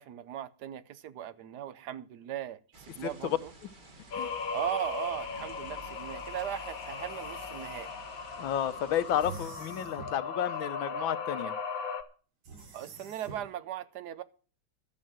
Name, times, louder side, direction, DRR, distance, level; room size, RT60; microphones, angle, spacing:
voice 1, 0.0-3.5 4.5-7.9 12.7-14.2, right 11 dB, 65° right, 1.1 m, -38 dB
sound 1, 2.7-9.4, right 2 dB, 25° right, 1.4 m, -52 dB
voice 2, 3.0-3.4 4.1-4.3 8.4-11.5, left 10 dB, 75° left, 1.5 m, -31 dB
sound 2, 4.1-12.0, left 5 dB, 50° left, 1.4 m, -38 dB
sound 3, 5.8-7.9 9.2-10.3 12.4-13.5, right 4 dB, 85° right, 3.3 m, -48 dB
12.0 x 7.6 x 7.5 m
omnidirectional pair, 2.2 m